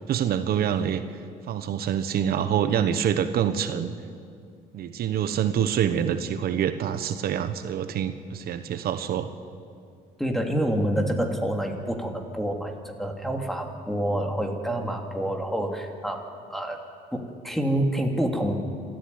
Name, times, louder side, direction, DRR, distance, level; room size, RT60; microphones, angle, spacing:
voice 1, 0.1-1.0 1.5-3.9 4.7-9.3, right 9 dB, 65° right, 10 dB, 1.2 m, -26 dB
voice 2, 10.2-16.8 17.1-18.5, right 1 dB, ahead, 3 dB, 2.8 m, -27 dB
27.0 x 14.0 x 9.7 m, 2.3 s
cardioid pair, 110°, 17 cm